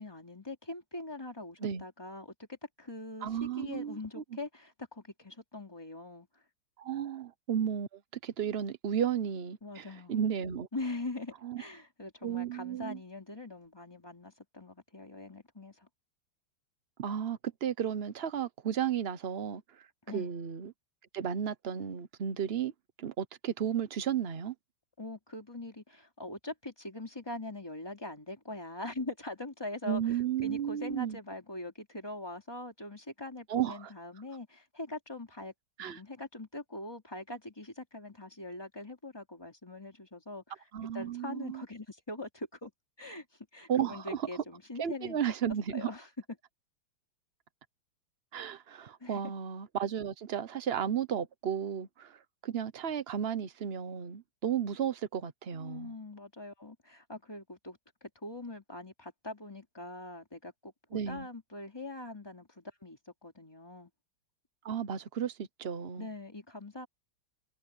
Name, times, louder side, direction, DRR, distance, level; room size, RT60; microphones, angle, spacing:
voice 1, 0.0-6.3 9.6-10.3 10.7-15.9 20.1-20.3 25.0-35.5 35.8-40.6 40.9-42.7 43.0-43.2 43.5-45.2 45.7-46.1 49.0-49.2 55.5-63.9 66.0-66.9, left 2 dB, 10° left, 3.0 m, -42 dB
voice 2, 3.2-4.2 6.8-10.7 11.4-11.6 12.2-13.0 17.0-19.9 20.1-20.7 21.1-22.7 23.0-24.5 29.9-31.2 33.5-33.9 35.8-36.0 40.7-41.6 43.7-44.3 44.8-45.9 48.3-55.9 60.9-61.3 64.6-66.1, right 8 dB, 70° right, 0.5 m, -33 dB
omnidirectional pair, 2.4 m